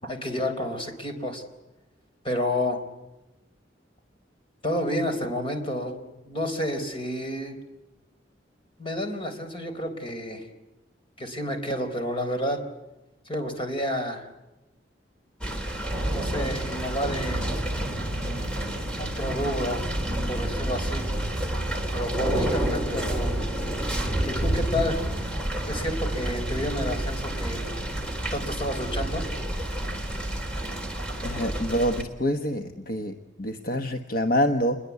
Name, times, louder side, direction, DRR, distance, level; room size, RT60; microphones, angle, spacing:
voice 1, 0.0-1.4 2.2-2.8 4.6-7.6 8.8-10.5 11.2-12.6 13.3-14.3 16.1-17.6 19.0-19.9 20.3-21.1 21.9-23.3 24.2-25.0 25.6-27.6 28.3-29.2, left 1 dB, 30° left, 5 dB, 4.1 m, -30 dB
sound 1, 15.4-32.0, right 1 dB, 5° left, 3.4 m, -29 dB
voice 2, 31.2-34.8, equal, 50° left, 6 dB, 1.3 m, -26 dB
28.5 x 22.0 x 8.3 m, 1.0 s
head